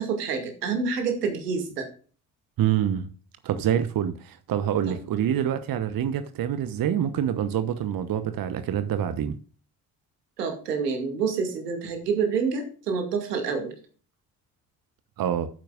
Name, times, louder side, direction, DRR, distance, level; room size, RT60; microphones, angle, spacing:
voice 1, 0.0-1.9 4.9-5.0 10.4-13.7, right 5 dB, 80° right, 2.3 m, -27 dB
voice 2, 2.6-3.1 3.4-9.3 15.2-15.5, right 9 dB, 45° right, 1.1 m, -26 dB
12.5 x 9.0 x 2.4 m
figure-of-eight pair, 45°, 47 cm